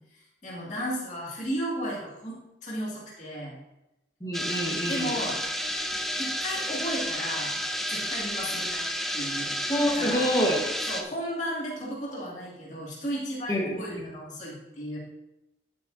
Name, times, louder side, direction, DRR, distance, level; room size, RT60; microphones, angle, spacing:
voice 1, 0.4-3.5 4.9-5.4 6.2-7.5 7.9-8.9 9.1-9.5 9.9-10.3 10.9-15.0, equal, 40° left, -5 dB, 2.5 m, -34 dB
voice 2, 4.2-5.2 9.7-10.7 13.5-14.1, equal, 20° left, -2 dB, 1.6 m, -27 dB
sound 1, 4.3-11.0, equal, ahead, 0.5 m, -31 dB
11.0 x 8.1 x 2.8 m, 0.96 s
head